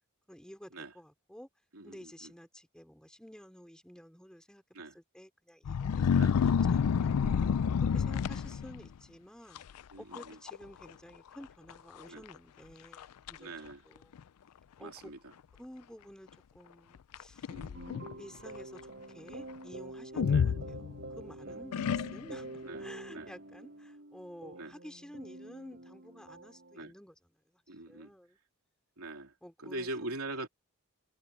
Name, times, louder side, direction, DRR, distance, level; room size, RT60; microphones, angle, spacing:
voice 1, 0.3-1.5 1.8-7.1 7.8-9.6 10.0-13.6 13.9-14.1 14.8-15.1 15.6-16.3 16.5-17.5 18.2-18.8 19.1-27.2 27.5-27.6 27.9-28.4 29.4-29.9, equal, 5° left, 3.4 m, -51 dB
voice 2, 1.7-2.3 4.7-4.9 6.2-6.4 7.2-7.6 9.9-10.4 12.1-12.2 13.4-13.8 14.8-15.3 17.5-17.9 20.3-20.5 21.4-21.6 22.6-22.8 23.1-23.3 24.5-24.7 26.8-26.9 27.7-28.1 29.0-29.3 29.6-30.5, right 2 dB, 70° right, 3.5 m, -43 dB
sound 1, 5.6-8.9 9.6-9.8 10.1-10.6 10.8-10.9 11.7-11.8 12.3-12.4 12.9-13.4 14.2-14.3 17.1-18.1 20.2-21.2 21.7-22.5, left 6 dB, 80° left, 0.4 m, -29 dB
sound 2, 17.7-26.8, right 2 dB, 50° right, 7.7 m, -47 dB
head